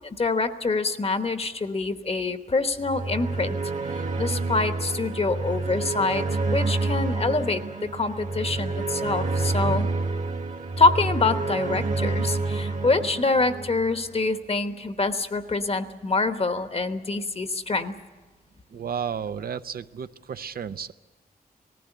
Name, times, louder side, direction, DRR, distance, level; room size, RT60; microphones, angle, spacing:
voice 1, 0.0-3.6 3.9-9.9 10.8-17.9, left 3 dB, 40° left, 9 dB, 1.1 m, -25 dB
sound 1, 2.8-14.1, right 3 dB, 55° right, 1.5 m, -28 dB
voice 2, 18.7-20.9, right 7 dB, 75° right, 11 dB, 0.6 m, -33 dB
19.0 x 15.5 x 9.9 m, 1.2 s
wide cardioid pair, 90°, 16 cm